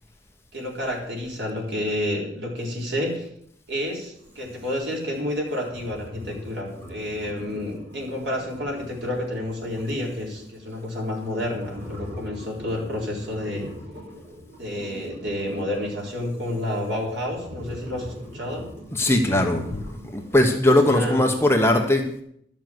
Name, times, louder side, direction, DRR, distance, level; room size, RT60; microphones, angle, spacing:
voice 1, 0.5-3.3 3.7-13.7 14.6-18.6 19.0-19.8 20.6-21.3, left 1 dB, 65° right, -2 dB, 4.2 m, -30 dB
sound 1, 4.1-21.7, equal, 40° right, 6.1 m, -43 dB
voice 2, 18.9-19.7 20.1-22.2, left 1 dB, 15° left, 3 dB, 1.1 m, -19 dB
12.0 x 7.3 x 7.8 m, 0.70 s
head